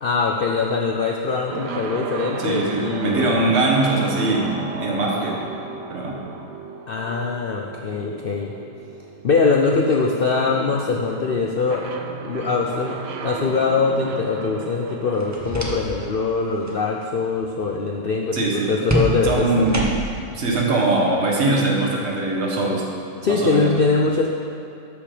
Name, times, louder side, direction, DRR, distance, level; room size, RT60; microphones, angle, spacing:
voice 1, 0.0-3.4 6.9-8.5 9.2-11.9 12.2-13.0 13.2-19.7 23.2-24.3, left 4 dB, 85° left, 0 dB, 0.5 m, -22 dB
sound 1, 1.5-17.3, right 5 dB, 80° right, 1.3 m, -34 dB
voice 2, 2.4-5.4 5.9-6.2 18.3-18.7 19.2-20.0 20.3-22.8 23.3-23.7, right 2 dB, 40° right, -2 dB, 1.6 m, -21 dB
sound 2, 15.1-16.1 16.4-16.8 18.9-20.3, right 1 dB, 15° right, 0.6 m, -26 dB
13.0 x 5.4 x 5.0 m, 2.6 s
omnidirectional pair, 1.8 m